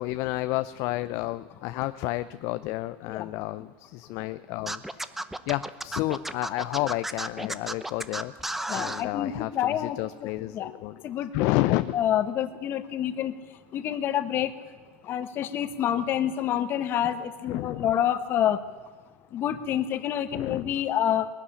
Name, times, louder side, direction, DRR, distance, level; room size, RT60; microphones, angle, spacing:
voice 1, 0.0-5.1 5.5-8.3 8.7-11.0 11.3-11.9 17.5-17.9 20.3-20.7, left 17 dB, 55° left, 12 dB, 0.6 m, -30 dB
Scratching (performance technique), 4.7-9.0, right 1 dB, 5° right, 0.8 m, -33 dB
voice 2, 8.7-10.0 10.5-10.7 11.0-11.5 11.9-13.3 13.7-14.5 15.0-18.6 19.3-21.3, left 10 dB, 40° left, 11 dB, 1.4 m, -27 dB
20.5 x 13.0 x 9.9 m, 1.4 s
supercardioid pair, 130°, 6 cm